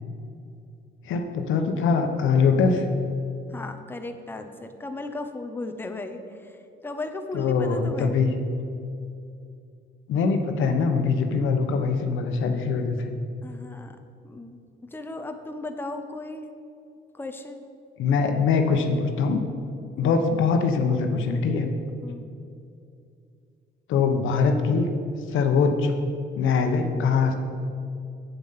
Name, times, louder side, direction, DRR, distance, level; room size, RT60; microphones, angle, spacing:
voice 1, 1.0-2.8 7.3-8.3 10.1-13.1 18.0-19.4 20.0-21.7 23.9-24.9 25.3-25.9 26.4-27.3, left 5 dB, 80° left, 6 dB, 1.0 m, -22 dB
voice 2, 3.5-6.5 6.8-8.1 13.4-14.0 14.2-14.6 14.9-16.5 17.2-17.6 20.0-20.1 22.0-22.3, left 2 dB, 10° left, 6 dB, 0.7 m, -36 dB
8.1 x 7.6 x 5.7 m, 2.5 s
cardioid pair, 90°, 20 cm